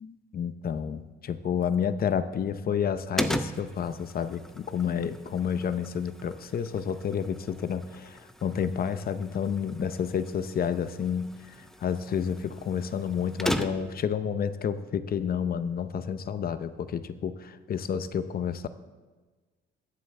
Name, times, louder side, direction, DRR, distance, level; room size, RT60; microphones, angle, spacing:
voice 1, 0.0-11.3 11.8-18.7, left 7 dB, 50° left, 12 dB, 0.7 m, -30 dB
sound 1, 3.2-14.1, equal, ahead, 0.6 m, -38 dB
21.5 x 7.7 x 3.3 m, 1.3 s
cardioid pair, 90°, 20 cm